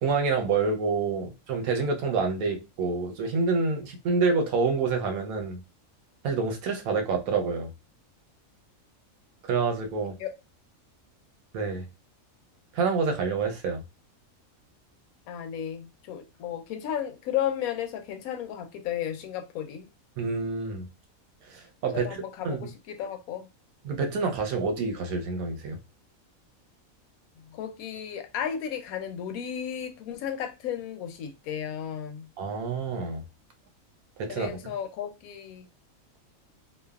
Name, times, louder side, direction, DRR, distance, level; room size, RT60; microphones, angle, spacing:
voice 1, 0.0-5.6 6.2-7.7 9.5-10.2 11.5-11.8 12.7-13.8 20.2-20.9 21.5-22.1 22.4-22.6 23.8-25.8 32.4-33.2 34.2-34.7, right 4 dB, 90° right, 1.1 m, -27 dB
voice 2, 10.0-10.4 15.3-19.9 21.9-23.5 27.4-32.3 34.3-35.7, left 9 dB, 85° left, 1.0 m, -34 dB
3.2 x 2.0 x 2.3 m
omnidirectional pair, 1.5 m